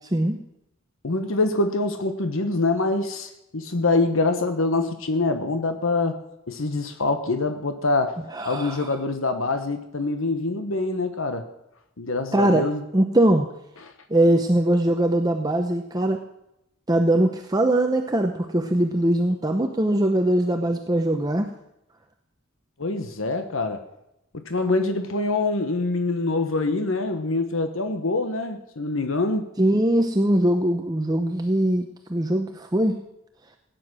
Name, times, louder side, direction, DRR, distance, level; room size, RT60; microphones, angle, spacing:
voice 1, 0.1-0.4 8.3-8.9 12.3-12.7 12.9-13.5 14.1-16.2 16.9-21.5 29.6-33.0, right 1 dB, 20° right, 5 dB, 0.7 m, -21 dB
voice 2, 1.0-6.2 6.5-8.2 8.4-11.4 12.0-12.8 22.8-23.8 24.3-29.5, left 3 dB, 80° left, 8 dB, 1.2 m, -25 dB
17.0 x 9.3 x 6.3 m, 0.84 s
head